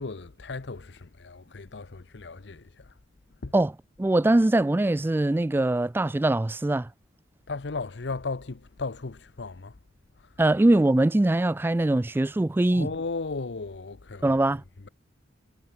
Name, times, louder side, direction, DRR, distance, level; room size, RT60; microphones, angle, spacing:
voice 1, 0.0-3.0 3.4-3.5 7.5-9.8 10.2-10.4 12.7-14.4, left 3 dB, 70° left, 0.8 m, -36 dB
voice 2, 4.0-6.9 10.4-12.9 14.2-14.6, right 2 dB, 10° right, 0.3 m, -22 dB
head